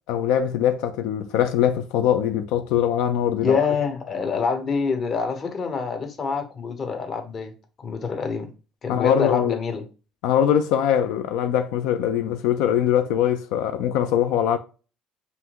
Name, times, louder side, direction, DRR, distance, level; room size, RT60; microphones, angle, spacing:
voice 1, 0.1-3.6 8.9-9.6 10.2-14.6, left 9 dB, 90° left, 0.4 m, -22 dB
voice 2, 3.4-7.5 7.8-8.5 8.8-9.8, left 5 dB, 35° left, 0.9 m, -26 dB
5.5 x 2.6 x 2.9 m
cardioid pair, 130°, 0 cm